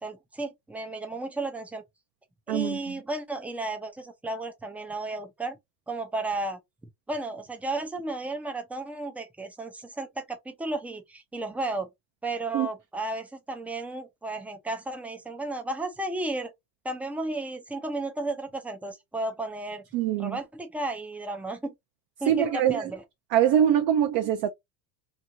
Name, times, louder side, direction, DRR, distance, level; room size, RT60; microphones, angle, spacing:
voice 1, 0.0-1.8 2.5-5.6 5.9-6.6 7.1-11.9 12.2-16.5 16.8-19.8 20.2-21.7 22.2-23.0, right 2 dB, 5° right, 0.4 m, -33 dB
voice 2, 2.5-2.9 12.5-12.7 19.9-20.4 22.3-22.9 23.3-24.5, right 10 dB, 55° right, 0.6 m, -23 dB
3.0 x 2.7 x 2.6 m
supercardioid pair, 135°, 46 cm